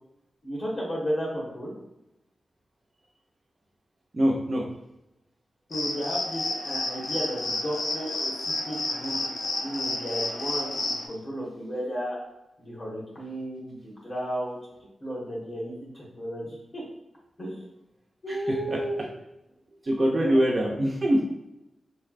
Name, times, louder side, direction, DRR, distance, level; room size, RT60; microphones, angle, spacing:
voice 1, 0.4-1.7 5.7-8.3 8.6-9.2 9.6-12.2 12.6-14.6 15.0-16.8 17.4-17.7 18.2-19.1 20.1-20.4, equal, 35° left, -5 dB, 1.2 m, -33 dB
voice 2, 4.1-4.6 19.9-21.2, equal, 30° right, -2 dB, 0.4 m, -23 dB
sound 1, 5.7-11.1, left 2 dB, 75° left, 0.6 m, -31 dB
3.8 x 3.2 x 2.4 m, 0.91 s
wide cardioid pair, 165°, 0 cm